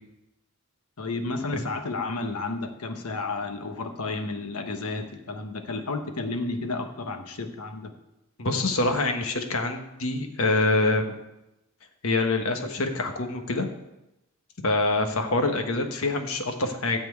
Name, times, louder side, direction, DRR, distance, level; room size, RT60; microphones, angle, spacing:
voice 1, 1.0-7.9, left 3 dB, 90° left, 5 dB, 1.2 m, -32 dB
voice 2, 8.4-11.0 12.0-13.7 14.6-17.0, left 2 dB, 65° left, 5 dB, 1.3 m, -25 dB
13.0 x 4.4 x 8.4 m, 0.94 s
head